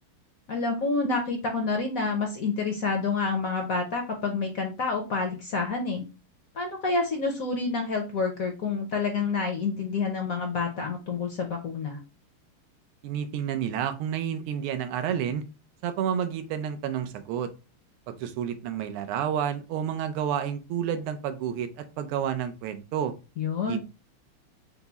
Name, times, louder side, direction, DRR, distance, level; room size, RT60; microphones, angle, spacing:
voice 1, 0.5-6.1 6.5-12.0 23.4-23.8, left 4 dB, 65° left, 3 dB, 0.8 m, -28 dB
voice 2, 13.0-15.4 15.8-17.5 18.2-23.1 23.7-23.8, right 9 dB, 80° right, 8 dB, 1.5 m, -30 dB
5.7 x 2.0 x 3.9 m, 0.30 s
omnidirectional pair, 2.4 m